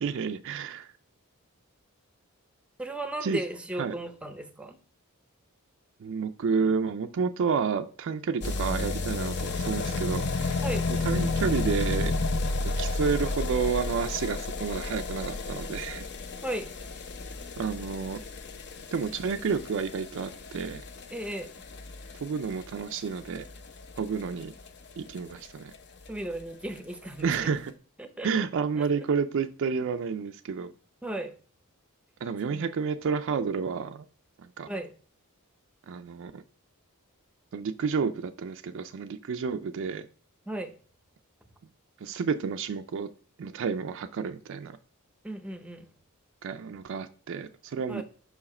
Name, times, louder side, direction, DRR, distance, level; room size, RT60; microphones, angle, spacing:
voice 1, 0.0-0.9 3.2-3.4 3.8-3.9 6.0-10.7 11.0-12.1 12.6-16.1 17.6-18.2 18.9-20.8 22.2-23.5 24.0-24.5 25.0-25.7 27.2-27.7 28.2-30.7 32.2-34.0 34.4-34.7 35.9-36.4 37.5-40.0 42.0-43.1 43.4-44.8 46.4-48.0, right 5 dB, 60° right, 7 dB, 0.4 m, -30 dB
voice 2, 2.8-4.8 10.6-10.9 16.4-16.7 21.1-21.5 26.1-27.5 28.0-28.3 28.8-28.9 31.0-31.3 32.5-32.7 34.7-34.9 40.5-40.7 45.2-45.9 47.9-48.0, right 1 dB, 5° right, 7 dB, 0.6 m, -35 dB
sound 1, 8.4-25.2 25.4-25.5 25.7-25.8 26.1-26.2 26.4-26.5 27.2-27.3, left 3 dB, 50° left, 0.6 m, -32 dB
5.7 x 4.7 x 4.2 m, 0.43 s
head